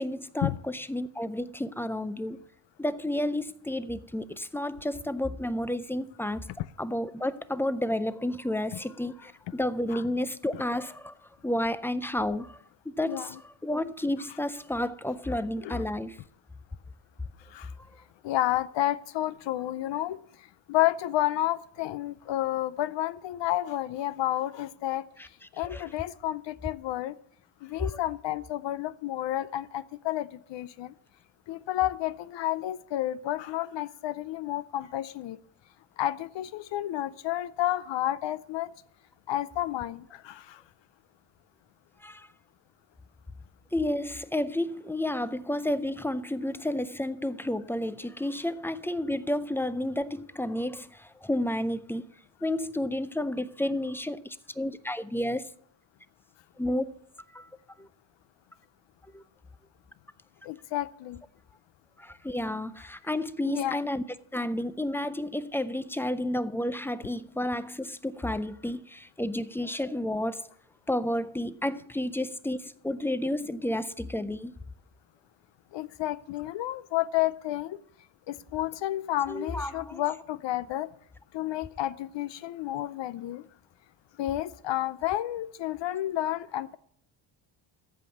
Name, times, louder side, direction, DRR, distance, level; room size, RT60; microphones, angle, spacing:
voice 1, 0.0-2.4 2.8-6.5 6.8-11.1 11.4-16.2 25.2-25.3 25.7-25.8 42.0-42.3 43.7-52.0 52.4-55.5 56.6-56.9 57.3-57.5 57.8-57.9 59.1-59.2 62.0-64.0 64.3-70.5 70.9-74.5 79.3-80.0, left 1 dB, 5° left, 0.3 m, -31 dB
voice 2, 18.2-25.0 25.5-27.1 27.6-30.9 31.5-35.4 36.0-38.7 39.3-40.6 60.4-61.2 63.4-63.8 75.7-77.8 78.3-80.9 81.3-83.5 84.2-86.8, left 14 dB, 65° left, 0.6 m, -31 dB
14.5 x 5.4 x 7.5 m
cardioid pair, 120°, 48 cm